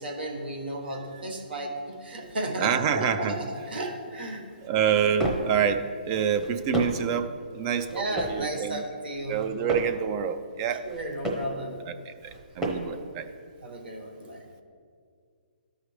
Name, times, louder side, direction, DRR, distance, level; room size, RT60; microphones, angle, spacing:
voice 1, 0.0-4.5 7.9-9.4 10.8-11.8 13.6-14.5, right 1 dB, 70° right, 1 dB, 1.4 m, -34 dB
voice 2, 2.6-3.4 4.6-7.3 7.5-8.8 9.3-10.8 12.1-12.2 12.6-13.3, right 8 dB, 30° right, 9 dB, 0.4 m, -27 dB
sound 1, 4.7-5.6 6.2-7.1 7.8-8.5 9.2-10.0 10.7-11.6 12.2-13.0, right 1 dB, 10° right, 0.9 m, -33 dB
13.5 x 4.8 x 3.2 m, 2.1 s
hypercardioid pair, 150°, 5 cm